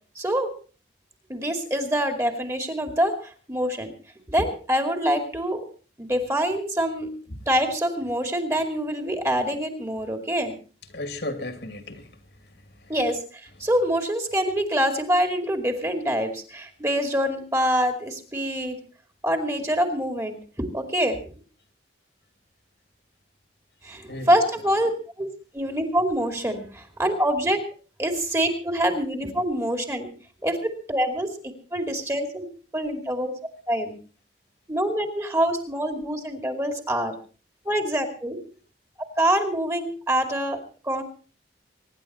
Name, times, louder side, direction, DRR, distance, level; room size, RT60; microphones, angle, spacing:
voice 1, 0.2-0.5 1.3-3.9 4.3-5.6 6.0-7.2 7.5-10.5 12.9-18.8 19.2-21.2 23.8-24.9 25.2-25.3 25.5-27.6 28.0-30.1 30.4-32.5 32.7-33.3 33.7-33.9 34.7-37.1 37.6-38.4 39.2-40.6 40.8-41.0, equal, 15° right, 5 dB, 2.4 m, -25 dB
voice 2, 10.9-12.9 24.1-24.4, left 2 dB, 70° left, 7 dB, 2.5 m, -36 dB
24.5 x 11.0 x 4.3 m, 0.39 s
head